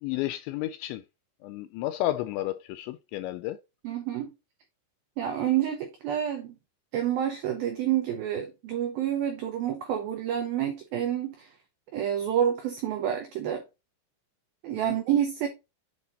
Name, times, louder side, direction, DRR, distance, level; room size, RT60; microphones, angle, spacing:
voice 1, 0.0-1.0 1.4-3.6 14.8-15.0, left 14 dB, 85° left, 2.6 m, -32 dB
voice 2, 3.8-4.3 5.2-6.6 6.9-11.5 11.9-13.6 14.6-15.5, right 10 dB, 85° right, 2.1 m, -28 dB
8.6 x 4.1 x 3.9 m
omnidirectional pair, 5.6 m